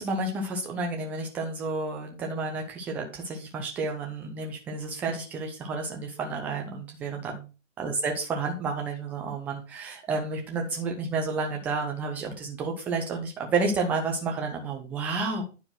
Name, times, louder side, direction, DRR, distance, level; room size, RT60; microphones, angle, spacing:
voice 1, 0.0-7.5 7.8-15.4, right 3 dB, 5° right, 2 dB, 0.4 m, -31 dB
9.6 x 4.6 x 4.3 m, 0.31 s
figure-of-eight pair, 115°, 39 cm